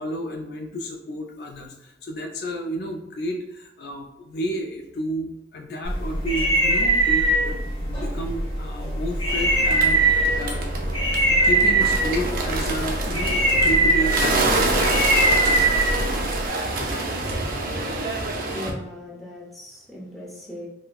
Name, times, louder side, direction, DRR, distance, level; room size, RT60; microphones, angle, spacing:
voice 1, 0.0-10.9 11.4-14.5, equal, 60° left, 2 dB, 0.3 m, -31 dB
sound 1, 5.9-16.5, right 1 dB, 30° left, 0.9 m, -22 dB
Bird, 9.3-18.7, right 2 dB, 50° right, 0.5 m, -27 dB
voice 2, 18.5-20.7, left 1 dB, ahead, -5 dB, 0.7 m, -38 dB
3.9 x 2.1 x 2.3 m, 0.93 s
head